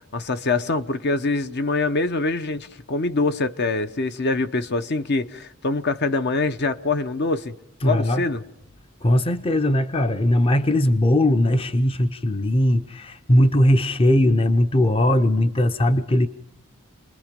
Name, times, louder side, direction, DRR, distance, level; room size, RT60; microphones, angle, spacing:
voice 1, 0.1-7.5 7.8-8.4, left 3 dB, 50° left, 0.9 m, -24 dB
voice 2, 7.8-8.2 9.0-16.3, left 1 dB, 25° left, 0.7 m, -19 dB
28.5 x 21.0 x 5.2 m
head